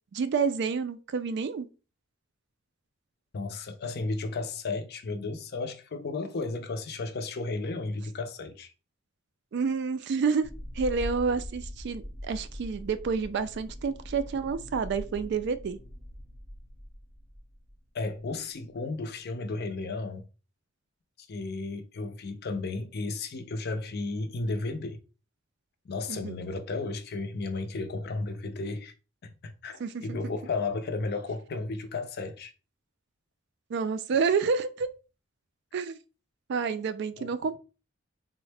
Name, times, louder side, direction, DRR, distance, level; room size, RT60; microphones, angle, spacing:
voice 1, 0.1-1.7 9.5-10.5 10.8-15.8 26.1-26.3 29.8-30.2 33.7-34.9 35.7-36.0 36.5-37.6, right 5 dB, 60° right, 0.3 m, -29 dB
voice 2, 3.3-8.7 17.9-20.2 21.3-25.0 25.8-28.9 29.2-32.5 37.2-37.3, left 3 dB, 55° left, 0.5 m, -34 dB
sound 1, 10.4-17.8 18.0-18.2 18.8-18.9, equal, 15° right, 0.7 m, -42 dB
3.6 x 2.1 x 3.2 m
head